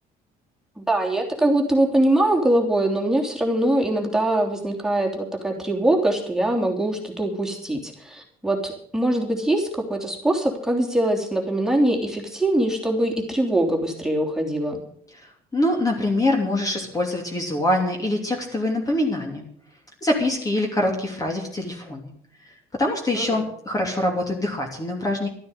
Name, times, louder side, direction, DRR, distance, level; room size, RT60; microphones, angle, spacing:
voice 1, 0.8-14.8 23.1-23.4, right 1 dB, 5° right, 0 dB, 3.3 m, -23 dB
voice 2, 15.5-19.4 20.0-22.1 22.8-25.3, left 1 dB, 20° left, 1 dB, 2.9 m, -24 dB
13.0 x 9.3 x 8.0 m, 0.65 s
cardioid pair, 110°, 17 cm